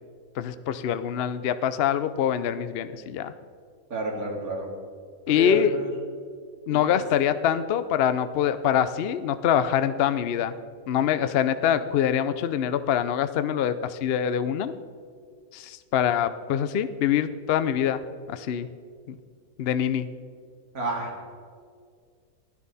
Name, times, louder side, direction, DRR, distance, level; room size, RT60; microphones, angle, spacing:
voice 1, 0.4-3.3 5.3-5.8 6.7-10.5 10.9-14.7 15.5-18.0 18.3-18.7 19.1-19.2 19.6-20.1, left 9 dB, 70° left, 12 dB, 0.5 m, -24 dB
voice 2, 3.9-4.7 5.3-5.9 6.9-7.0 20.7-21.1, right 1 dB, 65° right, -1 dB, 2.6 m, -30 dB
16.0 x 11.5 x 4.1 m, 2.1 s
omnidirectional pair, 1.7 m